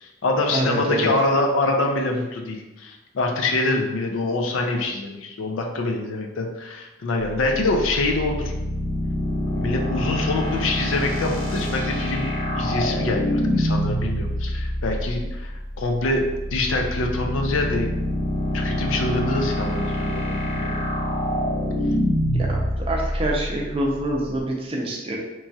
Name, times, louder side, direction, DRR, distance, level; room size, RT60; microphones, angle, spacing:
voice 1, 0.0-8.5 9.6-15.5 15.8-17.9 18.5-20.7, left 2 dB, 80° left, 2 dB, 0.4 m, -25 dB
voice 2, 0.5-1.1 22.3-25.2, right 1 dB, 30° right, -1 dB, 0.4 m, -26 dB
sound 1, 7.2-24.4, equal, 45° left, 0.9 m, -26 dB
3.0 x 2.2 x 2.7 m, 1.0 s
head